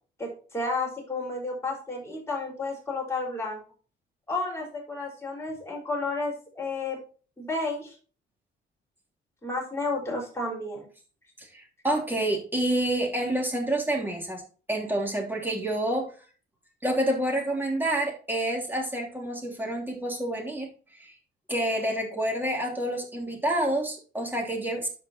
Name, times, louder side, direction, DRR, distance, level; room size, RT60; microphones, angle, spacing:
voice 1, 0.2-3.6 4.3-7.0 7.4-7.9 9.4-10.9, left 3 dB, 15° left, -3 dB, 5.1 m, -32 dB
voice 2, 11.4-14.4 14.7-16.1 16.8-20.7 20.9-21.1 21.5-24.9, right 1 dB, 10° right, -1 dB, 3.2 m, -28 dB
13.0 x 5.3 x 3.0 m, 0.39 s
cardioid pair, 90°, 20 cm